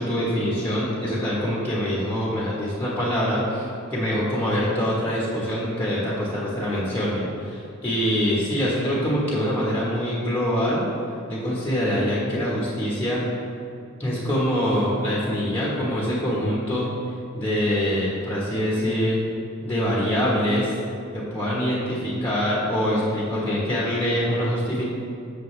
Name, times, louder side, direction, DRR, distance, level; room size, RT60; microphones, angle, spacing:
voice 1, 0.0-10.8 11.3-13.2 14.0-16.9 17.3-19.2 19.6-20.7 21.1-24.9, equal, 10° left, -6 dB, 1.4 m, -24 dB
7.7 x 6.8 x 3.3 m, 2.6 s
head